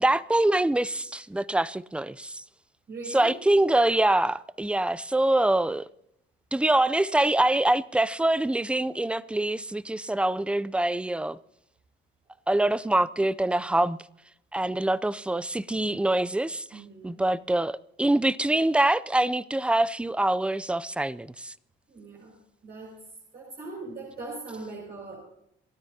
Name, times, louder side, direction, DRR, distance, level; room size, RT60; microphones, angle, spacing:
voice 1, 0.0-2.4 3.1-5.9 6.5-11.4 12.5-14.0 14.5-21.5, right 1 dB, 5° right, 0.5 m, -25 dB
voice 2, 2.9-3.3 16.7-17.2 21.9-22.3 22.6-22.9 23.3-25.2, right 3 dB, 55° right, 6.0 m, -40 dB
27.5 x 13.0 x 2.8 m
cardioid pair, 90°, 20 cm